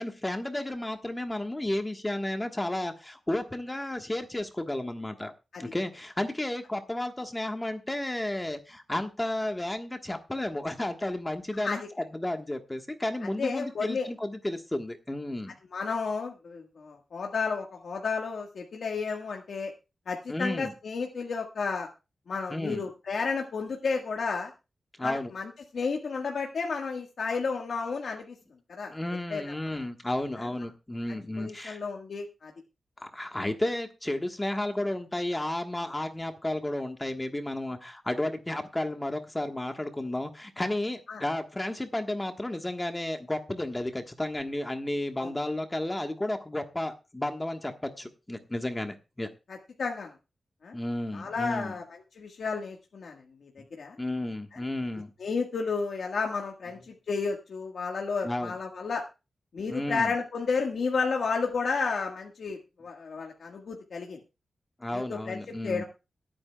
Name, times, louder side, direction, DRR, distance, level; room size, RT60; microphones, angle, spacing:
voice 1, 0.0-5.3 5.6-15.5 20.3-20.7 22.5-22.8 25.0-25.3 28.9-31.8 33.0-49.3 50.7-51.7 54.0-55.1 58.2-58.5 59.7-60.1 64.8-65.8, left 1 dB, 15° left, 5 dB, 1.4 m, -32 dB
voice 2, 13.4-14.1 15.7-19.7 20.1-21.9 22.3-24.5 25.0-28.4 28.7-28.9 29.3-29.8 30.4-30.5 31.1-32.5 41.1-41.2 45.2-45.3 49.5-50.1 50.6-50.7 51.1-51.8 52.1-54.0 55.2-59.0 59.5-64.2 64.9-65.4 65.6-65.8, left 4 dB, 75° left, 1 dB, 1.6 m, -32 dB
23.5 x 8.8 x 2.3 m, 0.29 s
wide cardioid pair, 85°, 0 cm